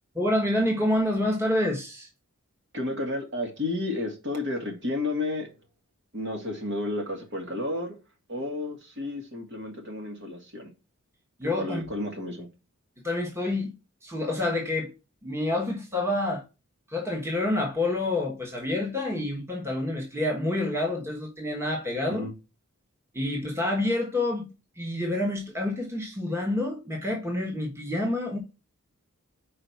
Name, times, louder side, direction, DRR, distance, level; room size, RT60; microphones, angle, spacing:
voice 1, 0.1-2.1 11.4-11.9 13.0-13.7 14.0-14.9 15.2-16.4 16.9-22.3 23.1-24.5 24.8-28.4, left 1 dB, 10° right, 1.2 m, -28 dB
voice 2, 2.7-5.5 6.1-8.0 8.3-10.7 11.6-12.5 22.1-22.3, left 2 dB, 55° right, 2.3 m, -32 dB
4.9 x 4.6 x 5.7 m
head